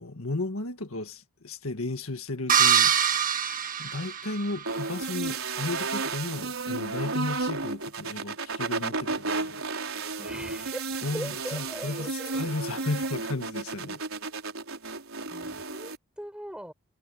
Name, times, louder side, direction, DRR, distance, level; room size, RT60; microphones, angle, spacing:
voice 1, 0.0-3.4 3.8-9.6 11.0-14.0, left 2 dB, 70° left, 1.7 m, -34 dB
sound 1, 2.5-4.7, right 8 dB, 40° right, 1.8 m, -24 dB
sound 2, 4.6-16.0, right 3 dB, 70° right, 5.1 m, -33 dB
voice 2, 10.2-10.9 11.1-12.4 15.3-16.7, equal, 5° right, 7.6 m, -40 dB
head